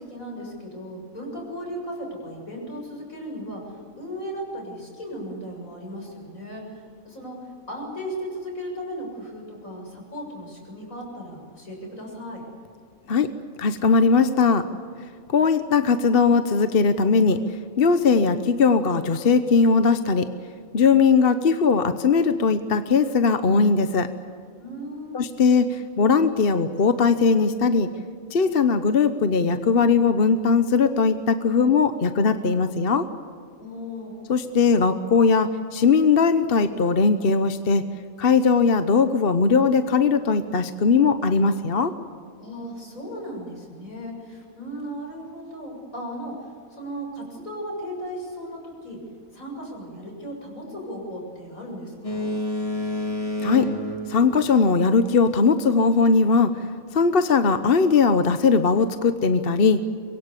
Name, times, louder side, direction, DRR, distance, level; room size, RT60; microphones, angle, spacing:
voice 1, 0.0-12.4 24.6-25.2 33.6-34.1 42.4-49.0 49.3-52.3, equal, 70° left, 0 dB, 7.6 m, -36 dB
voice 2, 13.6-14.7 15.3-17.4 17.8-20.3 20.7-24.1 25.1-27.9 28.3-33.1 34.3-37.8 38.2-41.9 53.4-53.7 54.1-56.6 56.9-59.8, left 5 dB, 45° left, 10 dB, 1.1 m, -19 dB
Boat Water vehicle, 52.0-55.2, left 2 dB, 25° left, 3.4 m, -30 dB
24.5 x 22.5 x 8.3 m, 2.3 s
omnidirectional pair, 1.5 m